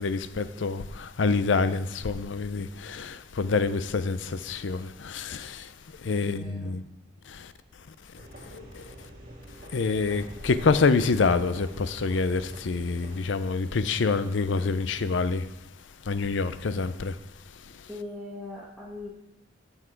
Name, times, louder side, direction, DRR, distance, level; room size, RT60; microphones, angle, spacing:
voice 1, 0.0-5.7 6.0-6.8 7.3-7.5 8.5-8.8 9.7-15.5 16.1-17.1, left 4 dB, 75° left, 0.5 m, -27 dB
voice 2, 6.2-6.7 17.9-19.1, left 2 dB, ahead, 1.4 m, -40 dB
sound 1, 8.2-13.2, right 1 dB, 50° right, 2.9 m, -46 dB
9.7 x 7.3 x 4.5 m
head